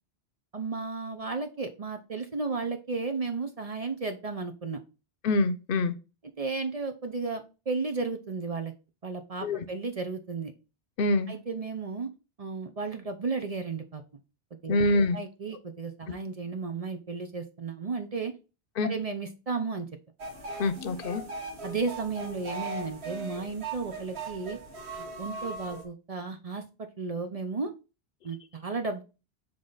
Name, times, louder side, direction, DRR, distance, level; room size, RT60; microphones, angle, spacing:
voice 1, 0.5-4.8 6.4-8.7 9.0-10.5 11.3-12.1 12.4-14.0 14.5-14.8 15.1-18.3 18.8-19.9 21.6-24.6 25.0-26.6 27.0-27.7 28.2-29.0, right 4 dB, 40° right, 0.7 m, -34 dB
voice 2, 5.2-6.0 9.4-9.6 11.0-11.3 14.7-15.2 18.8-18.9 20.6-21.2, left 2 dB, 60° left, 0.9 m, -25 dB
sound 1, 20.2-25.8, right 2 dB, 85° right, 1.6 m, -39 dB
7.1 x 3.3 x 3.9 m
omnidirectional pair, 1.1 m